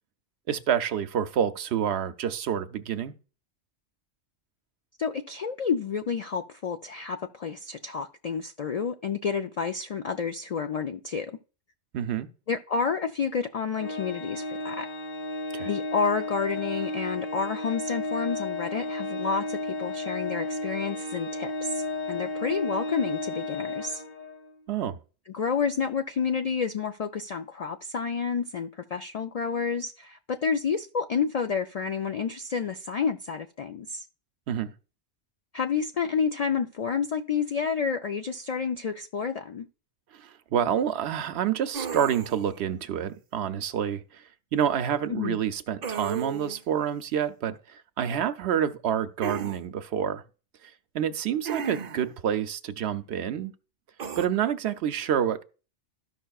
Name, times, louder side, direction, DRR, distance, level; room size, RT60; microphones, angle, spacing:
voice 1, 0.5-3.1 11.9-12.3 15.5-15.7 24.7-25.0 34.5-34.7 40.2-44.2 44.5-50.2 50.9-53.5 54.2-55.4, right 9 dB, 70° right, 0.8 m, -28 dB
voice 2, 5.0-11.4 12.5-14.9 15.6-24.0 25.3-34.1 35.5-39.7 45.1-45.4, left 6 dB, 70° left, 0.3 m, -29 dB
Organ, 13.8-24.5, left 2 dB, 50° left, 1.2 m, -33 dB
sound 1, 41.7-42.5 45.8-46.6 49.2-49.6 51.4-52.1 54.0-54.3, right 7 dB, 45° right, 0.6 m, -33 dB
13.0 x 5.5 x 2.3 m
omnidirectional pair, 1.2 m